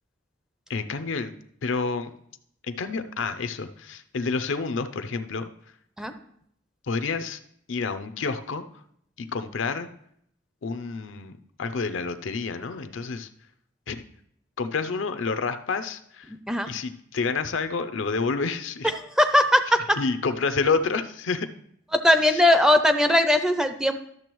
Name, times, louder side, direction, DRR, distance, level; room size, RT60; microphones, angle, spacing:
voice 1, 0.7-1.3 1.6-2.1 2.7-5.5 6.9-7.4 7.7-8.6 9.2-9.9 10.6-11.3 11.6-13.3 13.9-14.0 14.6-16.3 16.7-18.9 20.0-21.5 22.3-22.4, left 4 dB, 85° left, 10 dB, 0.6 m, -28 dB
voice 2, 16.3-16.7 18.9-20.0 21.9-24.0, left 1 dB, 5° right, 9 dB, 0.4 m, -20 dB
12.0 x 6.8 x 3.0 m, 0.70 s
head